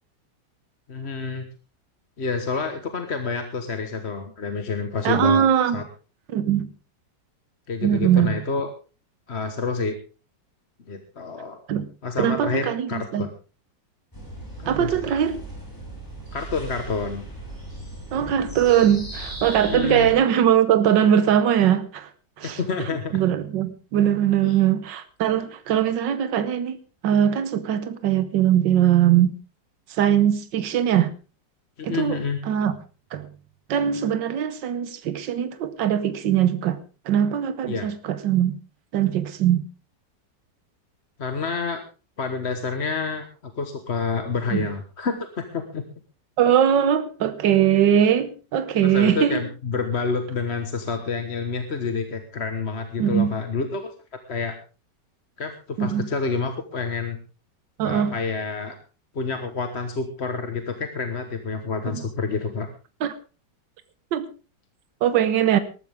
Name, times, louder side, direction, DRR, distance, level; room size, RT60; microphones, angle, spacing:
voice 1, 0.9-1.5 2.2-5.5 5.7-5.8 7.7-8.7 9.3-10.0 10.9-11.6 12.0-13.3 14.6-15.1 16.3-17.2 19.6-20.1 22.4-23.2 24.4-24.6 31.8-32.4 37.7-37.9 41.2-41.8 42.2-45.8 48.8-53.9 54.3-54.5 55.4-57.2 57.8-58.7 59.1-62.7, left 4 dB, 40° left, 7 dB, 1.4 m, -28 dB
voice 2, 5.0-5.8 6.3-6.7 7.8-8.4 11.7-11.9 12.2-13.3 14.7-15.4 18.1-22.1 22.4-29.3 29.9-31.1 31.8-32.7 33.1-33.3 33.7-36.8 37.1-38.6 38.9-39.6 44.5-44.7 46.4-49.4 53.0-53.3 55.8-56.1 57.8-58.1 61.9-62.0 63.0-63.1 64.1-64.3 65.0-65.6, right 10 dB, 90° right, 12 dB, 1.6 m, -21 dB
sound 1, 14.1-20.1, right 1 dB, 10° left, 6.6 m, -37 dB
19.0 x 13.5 x 3.5 m, 0.34 s
omnidirectional pair, 1.9 m